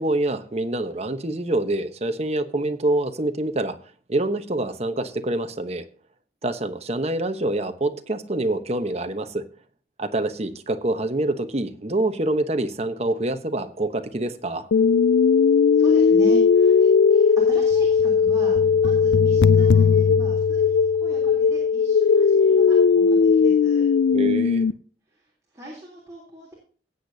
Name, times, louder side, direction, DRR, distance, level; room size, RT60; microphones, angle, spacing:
voice 1, 0.0-3.8 4.1-5.8 6.4-9.4 10.0-14.7 24.1-24.6, right 2 dB, 35° right, 1.1 m, -26 dB
sound 1, 14.7-24.7, left 6 dB, 85° left, 0.4 m, -17 dB
voice 2, 15.7-23.9 25.1-26.5, right 1 dB, 20° right, 3.4 m, -40 dB
17.0 x 8.1 x 2.8 m
head